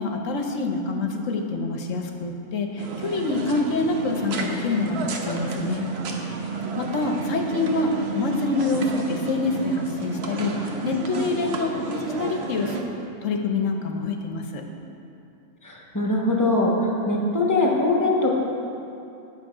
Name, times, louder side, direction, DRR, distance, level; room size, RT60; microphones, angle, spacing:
voice 1, 0.0-5.9 6.2-6.4 6.8-12.8 13.2-14.7, left 3 dB, 65° left, 4 dB, 1.1 m, -26 dB
sound 1, 2.8-12.8, right 3 dB, 55° right, 0.9 m, -32 dB
voice 2, 15.6-16.7 17.0-18.4, left 2 dB, 15° left, -2 dB, 0.9 m, -22 dB
9.6 x 6.6 x 4.8 m, 2.7 s
omnidirectional pair, 1.5 m